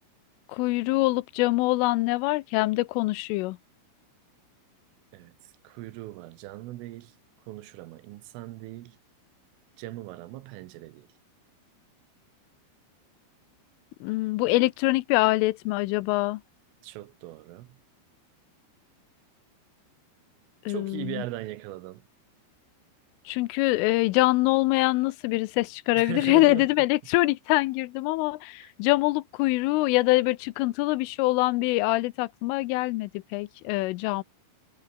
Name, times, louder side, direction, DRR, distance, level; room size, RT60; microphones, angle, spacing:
voice 1, 0.5-3.6 14.0-16.4 20.7-21.2 23.3-34.2, left 20 dB, 85° left, 3.3 m, -24 dB
voice 2, 5.7-7.1 7.5-9.0 9.8-11.1 16.8-17.8 20.7-22.0 26.0-26.7 28.6-28.7, right 16 dB, 85° right, 3.7 m, -39 dB
omnidirectional pair, 5.7 m